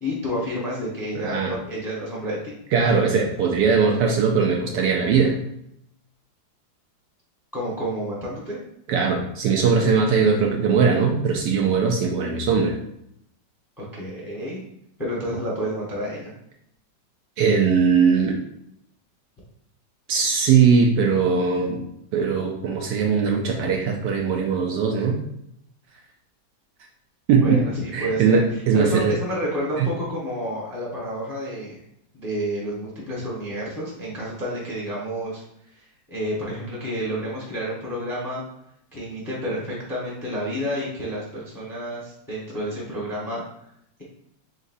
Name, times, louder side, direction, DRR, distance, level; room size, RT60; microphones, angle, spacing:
voice 1, 0.0-2.5 7.5-8.6 13.8-14.6 15.0-16.3 27.4-31.8 32.1-35.4 35.7-38.4 38.9-43.4, equal, 15° left, -6 dB, 0.7 m, -30 dB
voice 2, 1.2-1.5 2.7-5.4 8.9-12.8 17.4-18.4 20.1-21.8 22.1-25.2 27.3-27.6 27.9-29.1 29.8-29.9, right 5 dB, 70° right, 1 dB, 1.1 m, -20 dB
4.0 x 3.9 x 2.6 m, 0.75 s
omnidirectional pair, 2.1 m